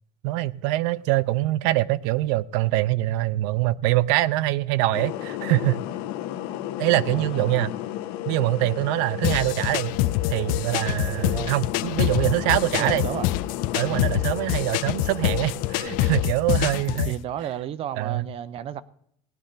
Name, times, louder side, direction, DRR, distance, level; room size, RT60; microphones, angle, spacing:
voice 1, 0.2-5.8 6.8-7.7 8.3-10.0 10.3-13.1 13.7-17.2 18.0-18.3, right 16 dB, 90° right, 0.5 m, -24 dB
sound 1, 4.9-16.3, left 13 dB, 85° left, 1.0 m, -33 dB
voice 2, 7.1-7.5 11.2-11.5 12.5-13.3 16.7-18.8, right 10 dB, 40° right, 0.7 m, -33 dB
sound 2, 9.2-17.2, left 16 dB, 70° left, 0.5 m, -26 dB
17.5 x 9.8 x 3.9 m
cardioid pair, 150°, 15 cm